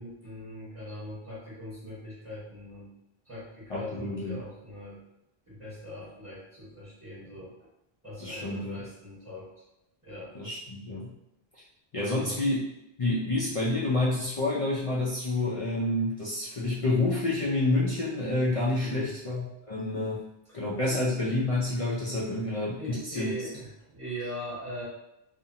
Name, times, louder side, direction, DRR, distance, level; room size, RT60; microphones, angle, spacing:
voice 1, 0.0-2.9 3.2-5.0 5.5-7.5 8.0-9.5 10.0-10.3 12.0-12.4 18.8-19.1 20.5-20.6 20.9-21.0 22.8-24.8, equal, 15° right, -11 dB, 1.1 m, -41 dB
voice 2, 3.7-4.4 8.2-8.8 10.3-11.1 11.9-12.6 13.0-20.2 20.5-23.3, left 2 dB, 55° left, -6 dB, 0.4 m, -28 dB
2.5 x 2.1 x 2.7 m, 0.84 s
omnidirectional pair, 1.1 m